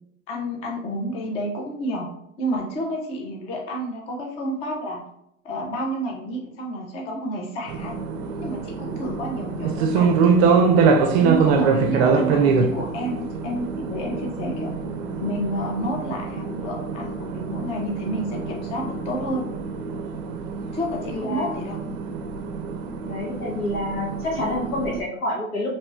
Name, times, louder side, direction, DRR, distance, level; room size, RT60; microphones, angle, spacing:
voice 1, 0.3-2.1 2.4-5.0 5.4-8.0 8.4-10.5 11.2-14.7 15.2-19.5 20.7-21.8, right 1 dB, 15° left, 0 dB, 0.4 m, -29 dB
sound 1, 7.7-25.0, right 5 dB, 50° right, 0.5 m, -24 dB
voice 2, 21.0-21.5 21.8-22.0 23.0-25.7, left 1 dB, 90° left, -3 dB, 1.4 m, -28 dB
3.0 x 2.9 x 2.3 m, 0.74 s
hypercardioid pair, 120°, 41 cm